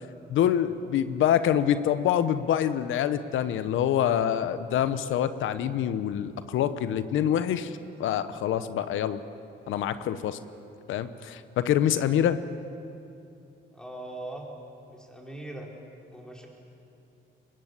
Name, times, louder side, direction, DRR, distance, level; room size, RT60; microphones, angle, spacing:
voice 1, 0.3-9.2 9.7-10.4 10.9-12.4, left 10 dB, 80° left, 12 dB, 1.0 m, -26 dB
voice 2, 13.7-14.5 14.9-15.7 16.1-16.5, right 1 dB, 5° left, -1 dB, 4.7 m, -40 dB
22.5 x 20.0 x 8.3 m, 2.7 s
cardioid pair, 90°, 20 cm